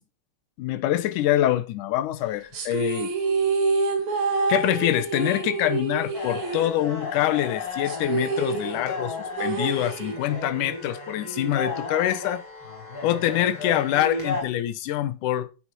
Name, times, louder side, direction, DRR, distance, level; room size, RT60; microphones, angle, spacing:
voice 1, 0.6-3.1 4.5-12.4 13.0-15.5, left 13 dB, 75° left, 2.4 m, -25 dB
sound 1, 2.5-7.2 7.5-7.6 7.9-10.5, right 4 dB, 65° right, 3.4 m, -27 dB
sound 2, 6.1-14.4, left 3 dB, 40° left, 4.3 m, -34 dB
9.8 x 9.1 x 4.7 m
omnidirectional pair, 3.8 m